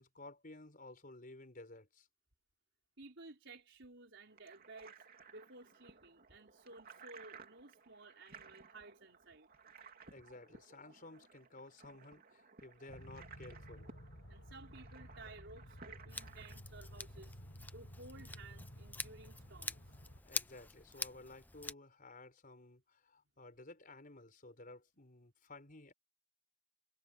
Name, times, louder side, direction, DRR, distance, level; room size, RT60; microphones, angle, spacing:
voice 1, 0.0-2.1 10.1-14.0 20.2-25.9, left 2 dB, 45° left, 5.1 m, -55 dB
voice 2, 3.0-5.0 5.3-9.5 14.3-17.4 17.7-19.8, right 2 dB, 65° right, 5.1 m, -55 dB
sound 1, 4.3-16.6, right 5 dB, 50° right, 3.0 m, -58 dB
sound 2, 12.9-20.2, equal, 70° left, 5.2 m, -54 dB
Scissors, 16.1-21.7, left 3 dB, 10° left, 0.8 m, -46 dB
head